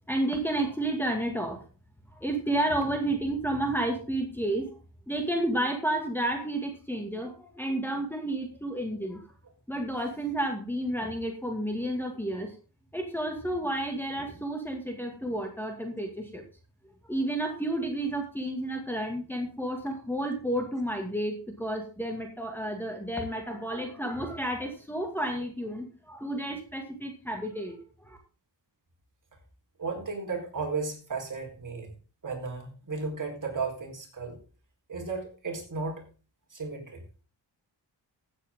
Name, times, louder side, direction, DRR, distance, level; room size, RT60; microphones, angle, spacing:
voice 1, 0.1-1.6 2.2-4.7 5.1-9.2 9.7-12.5 12.9-16.4 17.0-28.2, right 1 dB, 5° left, 2 dB, 2.1 m, -31 dB
voice 2, 29.8-31.9 32.2-34.4 34.9-36.1 36.5-37.0, right 4 dB, 45° right, 0 dB, 4.4 m, -34 dB
15.0 x 8.4 x 3.8 m, 0.36 s
wide cardioid pair, 100°, 43 cm